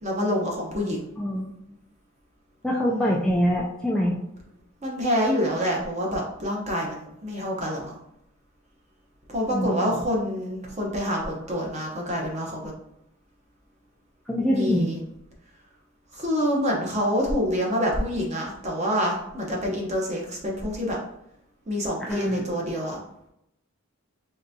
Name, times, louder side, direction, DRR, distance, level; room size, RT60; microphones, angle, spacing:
voice 1, 0.0-1.1 2.9-3.2 4.8-8.0 9.3-12.7 14.5-15.0 16.1-21.0 21.7-23.0, equal, 30° right, -1 dB, 0.9 m, -27 dB
voice 2, 1.2-1.5 2.6-4.2 9.5-10.0 14.3-14.9 22.1-22.6, equal, 5° left, -4 dB, 0.3 m, -25 dB
3.9 x 3.4 x 2.7 m, 0.79 s
head